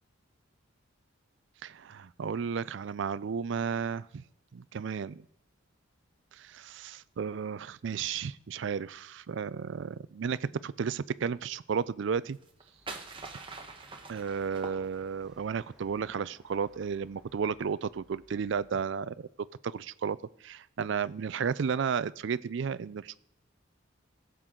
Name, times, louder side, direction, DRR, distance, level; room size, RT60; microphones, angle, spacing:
voice 1, 1.6-4.2 4.5-5.2 6.3-12.4 14.1-19.3 19.6-23.1, right 6 dB, 60° right, 18 dB, 0.4 m, -33 dB
sound 1, 12.3-15.4, right 3 dB, 25° right, 1.1 m, -44 dB
sound 2, 12.7-18.7, right 1 dB, 5° right, 1.7 m, -63 dB
16.5 x 7.8 x 3.8 m, 0.76 s
head